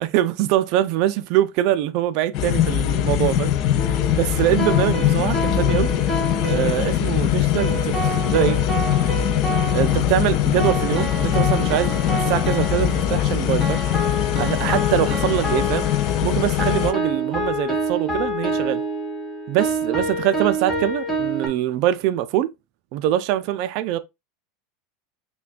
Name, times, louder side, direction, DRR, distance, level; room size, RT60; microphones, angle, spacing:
voice 1, 0.0-3.5 4.1-5.9 6.5-8.0 8.2-8.6 9.7-13.8 14.4-15.9 16.2-18.8 19.5-22.5 22.9-24.0, right 12 dB, 50° right, 0.3 m, -23 dB
sound 1, 2.3-16.9, left 11 dB, 40° left, 0.3 m, -21 dB
sound 2, 3.8-21.5, right 1 dB, 5° left, 0.9 m, -28 dB
5.7 x 2.2 x 2.3 m
supercardioid pair, 160°, 0 cm